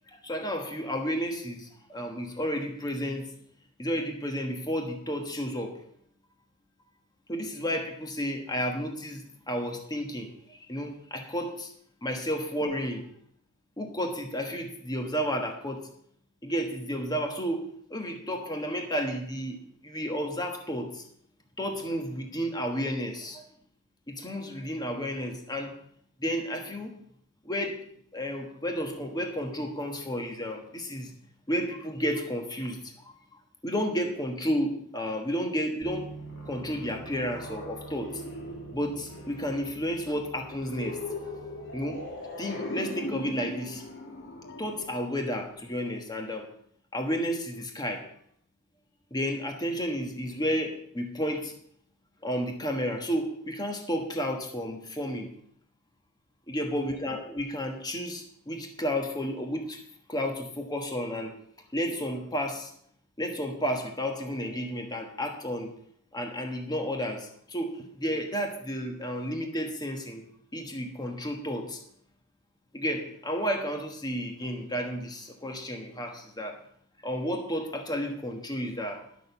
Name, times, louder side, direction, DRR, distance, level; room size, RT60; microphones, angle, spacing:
voice 1, 0.1-3.3 3.8-5.7 7.3-11.7 12.0-13.1 13.8-15.8 16.4-17.6 17.9-21.1 21.6-23.4 24.1-25.8 26.2-27.0 27.4-27.9 28.1-31.1 31.5-33.1 33.6-36.1 36.5-38.2 38.7-41.0 41.7-42.0 42.4-43.8 44.6-46.5 46.9-48.1 49.1-51.5 52.2-55.3 56.5-59.8 60.1-61.3 61.7-62.7 63.2-65.7 66.1-70.2 70.5-71.8 72.7-76.6 77.0-79.0, equal, 20° left, 3 dB, 1.4 m, -32 dB
Bass guitar, 35.8-42.1, right 3 dB, 15° right, 0.9 m, -47 dB
sound 1, 36.0-45.7, left 2 dB, 60° left, 2.1 m, -40 dB
11.5 x 6.4 x 6.9 m, 0.66 s
head